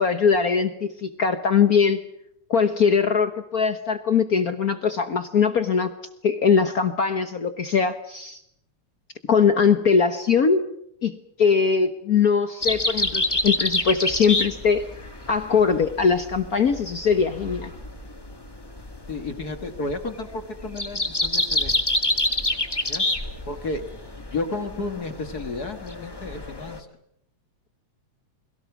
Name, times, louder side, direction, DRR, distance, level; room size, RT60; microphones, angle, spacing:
voice 1, 0.0-2.0 2.5-5.9 6.2-8.4 9.3-10.6 11.0-14.9 15.3-17.7, left 6 dB, 75° left, 10 dB, 0.8 m, -21 dB
sound 1, 12.6-26.8, left 2 dB, 10° left, 1.2 m, -27 dB
voice 2, 19.1-21.7 22.9-23.1 23.5-23.8 24.3-26.9, left 3 dB, 40° left, 8 dB, 1.7 m, -32 dB
30.0 x 22.5 x 6.0 m, 0.73 s
omnidirectional pair, 3.3 m